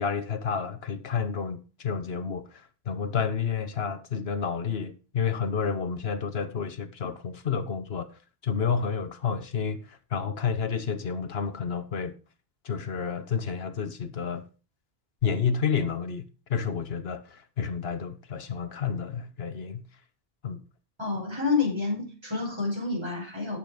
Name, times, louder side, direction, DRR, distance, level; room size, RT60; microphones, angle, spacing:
voice 1, 0.0-8.1 8.4-12.1 12.6-14.4 15.2-19.8 20.4-20.6, left 6 dB, 75° left, 1.2 m, -30 dB
voice 2, 21.0-23.6, left 4 dB, 25° right, 6.4 m, -28 dB
11.5 x 7.8 x 5.1 m
omnidirectional pair, 1.0 m